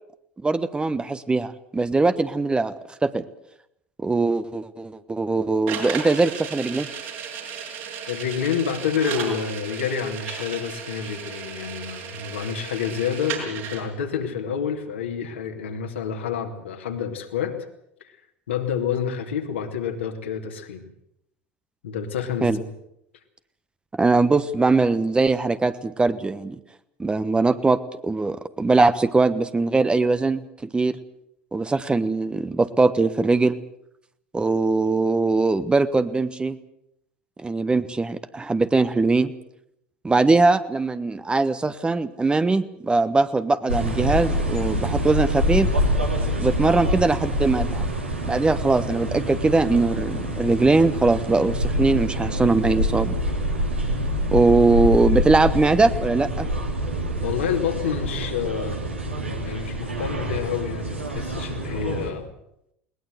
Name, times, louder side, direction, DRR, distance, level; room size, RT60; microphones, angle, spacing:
voice 1, 0.4-2.7 3.0-3.3 4.0-6.9 22.4-22.6 24.0-26.6 27.0-31.0 31.5-33.6 34.3-36.6 37.4-39.3 40.0-45.7 46.4-47.9 48.2-53.2 54.3-56.5, right 3 dB, 15° right, 12 dB, 1.2 m, -21 dB
sound 1, 5.7-13.8, right 7 dB, 65° right, 6.4 m, -34 dB
voice 2, 8.1-17.6 18.0-18.1 18.5-20.8 21.8-22.7 57.2-58.9 59.3-62.3, left 7 dB, 75° left, 3 dB, 2.7 m, -28 dB
sound 2, 43.7-62.1, equal, 90° right, 3.3 m, -26 dB
21.5 x 19.5 x 8.0 m, 0.77 s
figure-of-eight pair, 70°, 6 cm